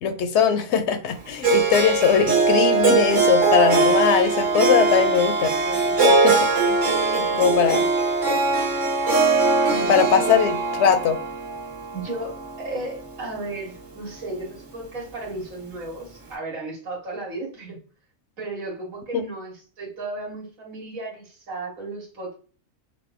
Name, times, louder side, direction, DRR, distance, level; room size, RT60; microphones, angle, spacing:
voice 1, 0.0-5.5 6.1-6.4 6.7-6.8 7.4-7.8 9.9-10.5 10.8-11.2 19.1-19.2, left 7 dB, 65° left, 9 dB, 0.8 m, -20 dB
Harp, 1.4-13.6, right 3 dB, 70° right, 1.8 m, -21 dB
voice 2, 5.6-6.0 6.9-7.9 9.7-10.3 11.9-17.8 18.4-22.4, right 2 dB, 85° right, -2 dB, 2.1 m, -34 dB
5.2 x 2.6 x 3.5 m, 0.39 s
omnidirectional pair, 1.4 m